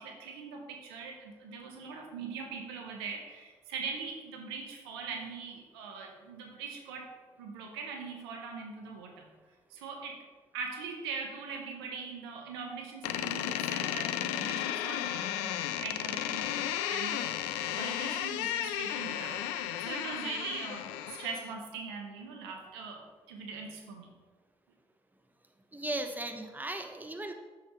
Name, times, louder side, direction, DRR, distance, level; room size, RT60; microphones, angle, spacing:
voice 1, 0.0-9.3 9.7-10.2 10.5-24.2, right 5 dB, 85° right, 2 dB, 1.0 m, -41 dB
Door, 13.0-21.5, left 11 dB, 80° left, 0.4 m, -34 dB
voice 2, 25.7-27.3, right 2 dB, 15° right, 5 dB, 1.1 m, -36 dB
7.6 x 7.2 x 3.1 m, 1.3 s
hypercardioid pair, 50°, 13 cm